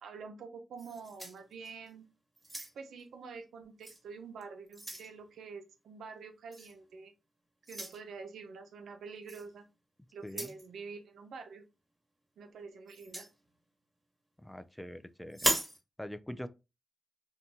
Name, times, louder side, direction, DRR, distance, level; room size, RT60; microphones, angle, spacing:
voice 1, 0.0-2.1 2.7-7.1 7.7-9.6 10.1-11.7 12.4-13.3, right 5 dB, 85° right, 0.4 m, -47 dB
sound 1, 0.8-1.9 2.4-3.0 3.8-4.0 4.4-5.1 6.5-6.7 7.6-8.0 9.3-9.5 10.2-10.6 12.9-13.3 15.3-15.8, right 1 dB, 25° right, 1.2 m, -36 dB
voice 2, 10.2-10.5 14.4-15.5 16.0-16.5, equal, 5° left, 0.3 m, -43 dB
2.7 x 2.2 x 2.7 m
supercardioid pair, 45°, 0 cm